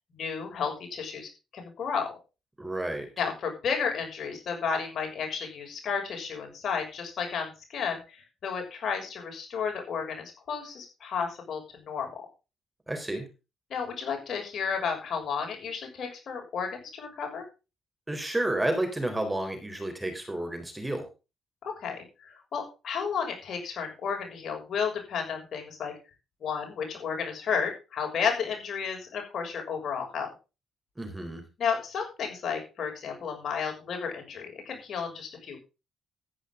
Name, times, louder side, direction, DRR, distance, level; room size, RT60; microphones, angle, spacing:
voice 1, 0.1-2.1 3.2-12.1 13.7-17.4 21.8-25.9 26.4-30.3 31.6-35.6, left 6 dB, 60° left, 2 dB, 6.5 m, -32 dB
voice 2, 2.6-3.1 12.9-13.3 18.1-21.1 31.0-31.4, right 1 dB, 10° right, 6 dB, 3.9 m, -31 dB
13.5 x 10.0 x 3.8 m, 0.29 s
cardioid pair, 90°, 0 cm